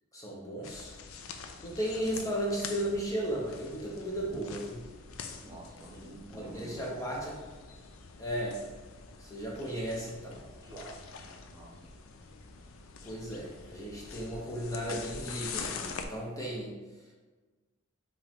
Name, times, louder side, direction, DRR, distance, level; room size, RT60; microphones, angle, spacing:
voice 1, 0.1-0.9 1.6-4.9 5.9-7.3 8.2-8.6 9.2-10.4 13.0-16.7, right 1 dB, 15° left, -4 dB, 0.7 m, -35 dB
sound 1, 0.6-16.1, left 5 dB, 75° left, 0.4 m, -45 dB
voice 2, 5.4-7.1 10.6-11.9, right 1 dB, 20° right, -2 dB, 0.7 m, -48 dB
5.0 x 2.9 x 3.5 m, 1.3 s
head